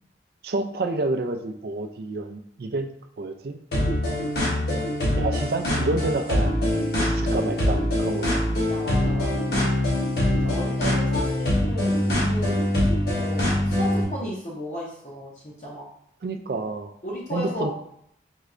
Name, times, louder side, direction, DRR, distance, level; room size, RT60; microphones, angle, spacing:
voice 1, 0.4-3.6 5.2-6.6 7.0-8.6 10.4-10.6 16.2-16.9 17.3-17.7, right 2 dB, 60° right, 7 dB, 0.4 m, -29 dB
sound 1, 3.7-14.0, left 1 dB, 60° left, 1.2 m, -23 dB
voice 2, 8.4-10.1 10.4-12.6 13.1-15.9 17.0-17.7, left 1 dB, 45° left, -5 dB, 0.8 m, -35 dB
4.5 x 3.2 x 2.5 m, 0.71 s
head